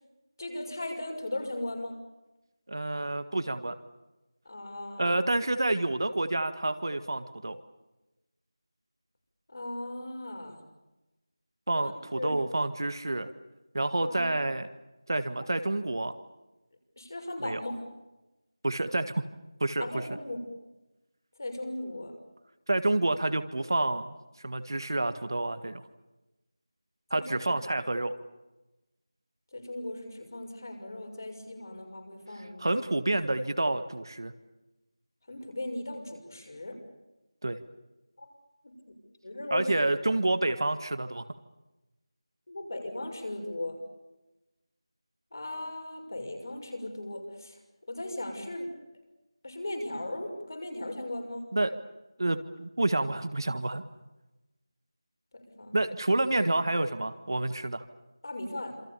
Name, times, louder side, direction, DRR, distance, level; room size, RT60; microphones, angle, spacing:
voice 1, 0.4-2.0 4.4-5.2 9.5-10.6 11.8-12.4 14.1-14.4 17.0-17.7 19.8-20.4 21.4-22.1 27.1-27.6 29.5-32.7 35.3-36.8 38.2-38.3 38.6-38.7 39.2-39.7 42.5-43.8 45.3-47.6 47.9-48.7 49.4-51.5 55.3-55.8 58.2-58.8, left 1 dB, 40° left, 3 dB, 6.4 m, -37 dB
voice 2, 2.7-3.7 5.0-7.6 11.7-13.3 13.7-14.7 15.1-16.1 17.4-17.6 18.6-19.2 19.6-19.9 22.7-24.2 24.4-25.8 27.1-28.1 32.6-34.3 37.4-37.6 39.5-41.2 51.5-51.7 52.2-53.8 55.7-57.9, right 2 dB, 50° right, 10 dB, 1.7 m, -28 dB
27.5 x 26.5 x 7.0 m, 1.0 s
figure-of-eight pair, 180°, 3 cm